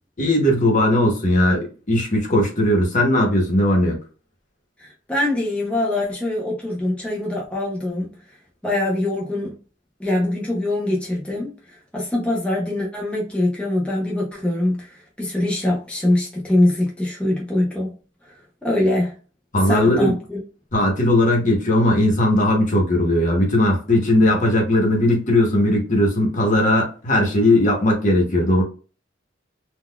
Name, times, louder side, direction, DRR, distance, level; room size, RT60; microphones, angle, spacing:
voice 1, 0.2-4.0 19.5-20.1 20.7-28.6, left 1 dB, 40° left, 1.0 m, -18 dB
voice 2, 4.8-8.1 8.6-9.5 10.0-11.5 11.9-17.9 18.2-18.3 18.6-19.1 19.7-20.4, left 1 dB, 5° left, 0.6 m, -23 dB
3.9 x 2.3 x 2.2 m
head